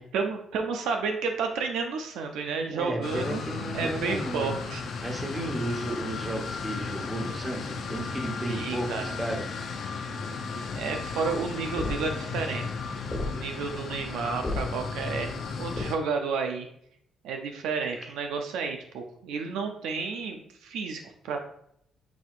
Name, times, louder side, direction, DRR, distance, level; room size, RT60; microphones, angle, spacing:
voice 1, 0.1-3.4 3.7-4.8 8.4-9.1 10.5-12.6 13.2-16.7 17.2-21.4, right 5 dB, 90° right, 4 dB, 0.5 m, -31 dB
voice 2, 2.7-4.5 5.0-9.5 9.8-10.0, right 1 dB, 15° right, 1 dB, 1.2 m, -33 dB
sound 1, 3.0-16.0, left 4 dB, 65° left, 0.6 m, -35 dB
sound 2, 10.8-15.8, left 2 dB, 30° left, 1.6 m, -37 dB
6.1 x 2.8 x 2.4 m, 0.69 s
cardioid pair, 90°, 0 cm